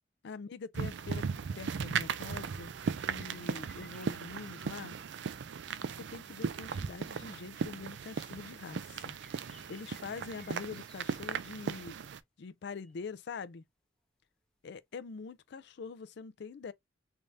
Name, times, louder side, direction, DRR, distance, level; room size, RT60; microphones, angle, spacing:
voice 1, 0.2-1.2 1.6-2.7 3.0-5.0 5.8-9.1 9.4-11.9 12.4-13.6 14.6-16.7, left 5 dB, 60° left, 0.4 m, -44 dB
sound 1, 0.7-12.2, right 6 dB, 60° right, 0.4 m, -37 dB
sound 2, 2.8-5.0 5.9-6.0 6.9-7.0 8.8-11.4 12.8-13.0 15.6-15.7, left 1 dB, 5° left, 0.7 m, -61 dB
3.5 x 2.7 x 3.2 m
head